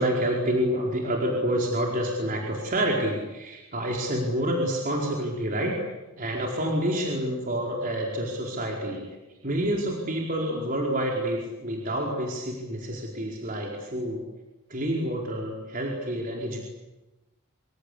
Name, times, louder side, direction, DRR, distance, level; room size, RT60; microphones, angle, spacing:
voice 1, 0.0-5.7 6.2-9.2 9.4-14.2 14.7-16.6, equal, 40° right, -1 dB, 4.7 m, -28 dB
26.0 x 26.0 x 8.6 m, 1.1 s
head